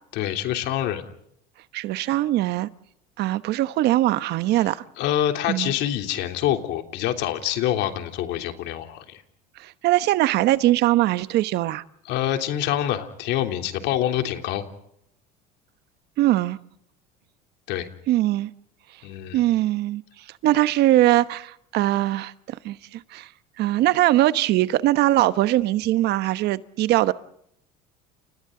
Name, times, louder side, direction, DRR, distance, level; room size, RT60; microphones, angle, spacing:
voice 1, 0.1-1.0 5.0-9.2 12.1-14.6 17.7-17.9 19.0-19.4, left 11 dB, 65° left, 5 dB, 3.3 m, -26 dB
voice 2, 1.7-2.7 3.2-4.8 5.5-5.7 9.6-11.8 16.2-16.6 18.1-18.5 19.3-20.0 20.4-23.3 23.6-27.1, right 15 dB, 60° right, 14 dB, 1.1 m, -21 dB
30.0 x 29.5 x 3.9 m, 0.72 s
supercardioid pair, 105°, 19 cm